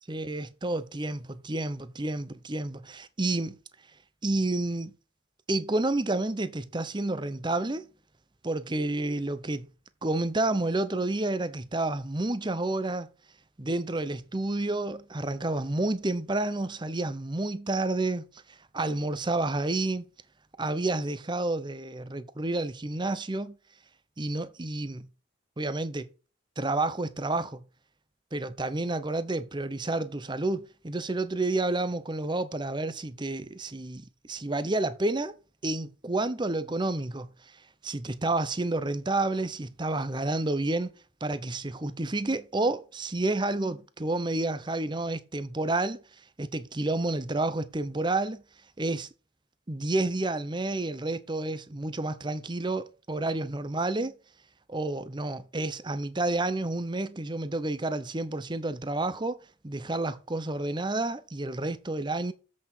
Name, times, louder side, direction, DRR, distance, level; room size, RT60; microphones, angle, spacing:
voice 1, 0.1-3.5 4.2-4.9 5.5-7.8 8.4-9.7 10.0-13.1 13.6-18.2 18.7-20.0 20.6-23.6 24.2-25.1 25.6-26.1 26.6-27.6 28.3-35.3 35.6-37.3 37.8-40.9 41.2-46.0 46.4-48.4 48.8-49.1 49.7-54.1 54.7-59.4 59.6-62.3, right 2 dB, 20° right, 0.7 m, -30 dB
7.9 x 6.4 x 4.4 m
head